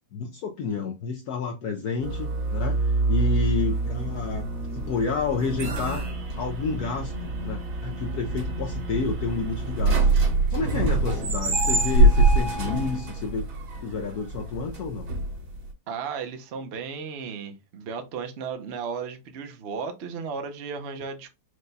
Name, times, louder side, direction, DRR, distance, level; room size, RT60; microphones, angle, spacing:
voice 1, 0.1-4.5 4.7-6.1 6.4-10.1 10.5-13.5 13.8-15.1, left 4 dB, 70° left, 0.9 m, -30 dB
sound 1, 2.0-15.7, right 2 dB, 90° right, 2.1 m, -25 dB
voice 2, 15.9-21.3, right 6 dB, 70° right, 0.6 m, -34 dB
4.8 x 2.2 x 3.9 m
omnidirectional pair, 2.1 m